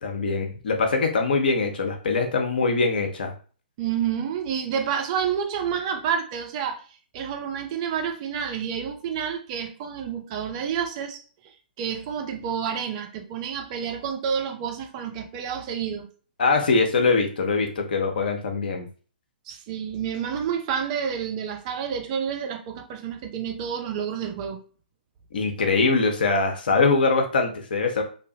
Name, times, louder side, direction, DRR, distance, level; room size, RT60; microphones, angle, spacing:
voice 1, 0.0-3.3 16.4-18.9 25.3-28.0, left 4 dB, 65° left, 0.7 m, -23 dB
voice 2, 3.8-6.8 7.1-16.1 19.5-24.6, right 7 dB, 40° right, 0.5 m, -29 dB
2.7 x 2.1 x 2.7 m
figure-of-eight pair, 120°, 5 cm